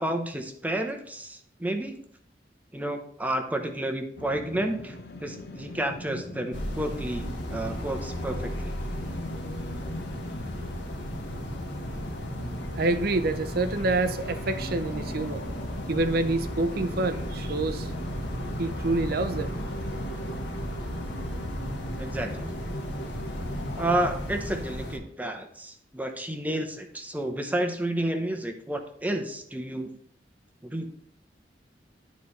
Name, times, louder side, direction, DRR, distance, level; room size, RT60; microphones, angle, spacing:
voice 1, 0.0-2.0 2.7-8.7 22.0-22.5 23.8-29.9 30.6-30.9, right 1 dB, 10° right, 0.8 m, -31 dB
sound 1, 4.2-24.1, left 1 dB, 60° left, 0.8 m, -40 dB
sound 2, 6.5-25.0, equal, 85° left, 1.4 m, -35 dB
voice 2, 12.7-15.4 15.9-17.9 18.6-19.5, right 2 dB, 55° right, 0.6 m, -27 dB
11.5 x 4.1 x 3.2 m
head